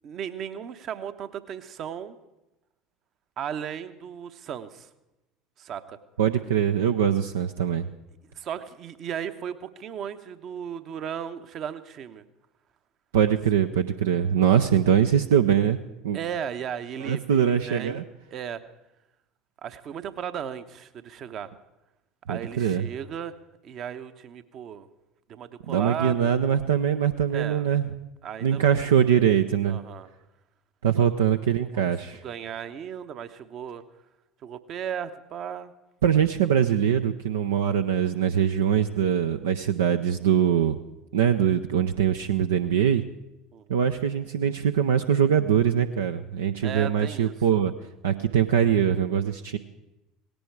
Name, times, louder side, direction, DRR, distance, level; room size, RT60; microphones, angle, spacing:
voice 1, 0.0-2.2 3.4-4.9 5.6-6.0 8.3-12.2 16.1-18.0 18.3-18.6 19.6-21.5 22.3-23.3 23.6-24.9 25.3-26.4 27.3-27.7 28.2-28.9 29.6-30.1 30.9-31.1 31.7-31.9 32.2-33.8 34.4-35.7 43.5-43.8 46.6-47.6, right 8 dB, 45° right, 10 dB, 1.0 m, -36 dB
voice 2, 6.2-7.9 13.1-15.8 16.0-16.2 17.0-18.0 22.3-22.9 25.7-27.9 28.4-29.8 30.8-32.2 36.0-40.8 41.1-43.0 43.7-47.7 48.0-49.6, right 8 dB, 70° right, 7 dB, 0.6 m, -22 dB
18.0 x 16.5 x 4.7 m, 0.96 s
figure-of-eight pair, 70°, 0 cm